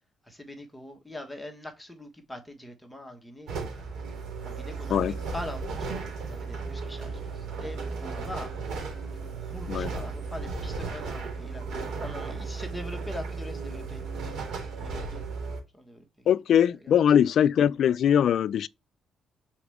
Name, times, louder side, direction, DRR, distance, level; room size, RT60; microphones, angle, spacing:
voice 1, 0.2-3.5 4.4-5.9 6.2-8.5 9.2-11.6 12.0-14.0 14.7-15.2 15.7-16.1 16.8-16.9, left 1 dB, 5° left, 1.4 m, -42 dB
sound 1, 3.5-15.6, right 4 dB, 75° right, 3.2 m, -35 dB
voice 2, 16.3-18.7, left 9 dB, 60° left, 0.3 m, -22 dB
7.0 x 4.3 x 3.5 m
cardioid pair, 140°, 0 cm